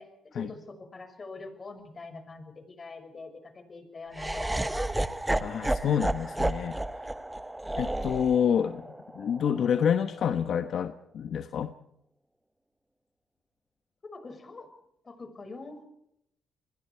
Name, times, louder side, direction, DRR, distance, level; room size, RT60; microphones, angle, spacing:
voice 1, 0.0-5.1 14.0-14.7 15.0-15.8, left 3 dB, 35° left, 8 dB, 6.0 m, -44 dB
Laughter, 4.1-10.3, right 1 dB, 10° right, 1.2 m, -32 dB
voice 2, 5.4-6.8 7.8-8.8 9.1-11.7, left 8 dB, 65° left, 9 dB, 1.1 m, -28 dB
29.0 x 22.0 x 4.7 m, 0.77 s
cardioid pair, 90°, 0 cm